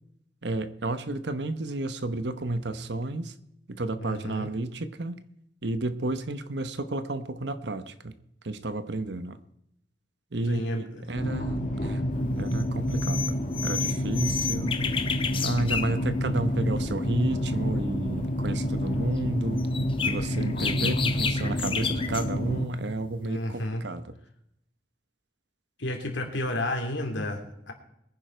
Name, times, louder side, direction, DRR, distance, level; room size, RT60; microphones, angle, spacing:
voice 1, 0.4-3.3 3.7-5.2 5.6-8.1 8.4-9.4 10.3-12.0 12.4-14.7 15.4-19.7 20.0-24.1, right 2 dB, 65° right, 12 dB, 1.0 m, -31 dB
voice 2, 4.0-4.5 10.5-11.0 23.2-23.8 25.8-27.7, left 1 dB, 80° left, 3 dB, 2.8 m, -31 dB
sound 1, 11.2-22.7, equal, 45° left, 1.7 m, -29 dB
sound 2, 12.5-12.6 12.9-15.9 19.6-22.3, left 6 dB, 30° left, 1.0 m, -31 dB
21.5 x 10.0 x 4.5 m, 0.81 s
head